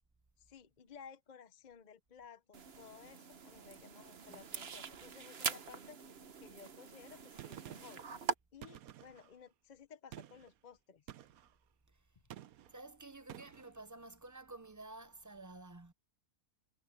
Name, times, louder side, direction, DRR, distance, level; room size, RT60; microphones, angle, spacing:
voice 1, 0.4-6.0 6.4-8.0 8.5-11.1, left 6 dB, 40° left, 0.6 m, -56 dB
sound 1, 2.5-8.3, right 6 dB, 45° right, 1.1 m, -43 dB
Gunshot gunfire, 7.4-8.1 8.6-9.3 10.1-10.5 11.1-11.5 12.3-12.8 13.3-13.7, right 12 dB, 70° right, 1.2 m, -51 dB
voice 2, 12.7-15.9, right 2 dB, 20° right, 0.5 m, -52 dB
omnidirectional pair, 1.6 m